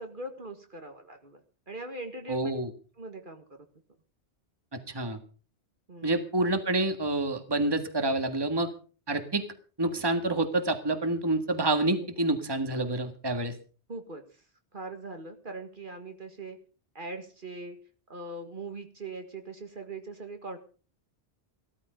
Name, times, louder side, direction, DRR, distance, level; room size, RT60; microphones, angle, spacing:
voice 1, 0.0-1.4 1.7-2.5 3.0-3.7 5.9-6.2 11.9-12.1 13.9-14.4 14.7-16.6 17.0-17.8 18.1-20.6, right 2 dB, 50° right, 6 dB, 1.9 m, -41 dB
voice 2, 2.3-2.7 4.7-5.2 6.0-8.7 9.1-9.4 9.8-13.5, right 2 dB, 20° right, 7 dB, 1.7 m, -28 dB
16.5 x 13.5 x 5.2 m, 0.39 s
omnidirectional pair, 1.1 m